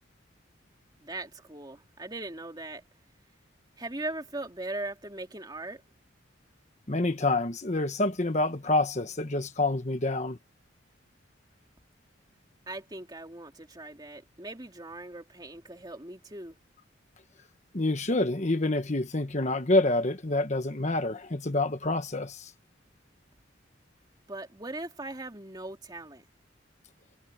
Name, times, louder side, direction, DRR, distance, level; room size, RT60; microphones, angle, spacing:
voice 1, 1.0-2.8 3.8-5.8 12.7-16.6 24.3-26.3, right 2 dB, 20° right, 2.7 m, -39 dB
voice 2, 6.9-10.4 17.7-22.5, left 2 dB, 35° left, 1.2 m, -27 dB
head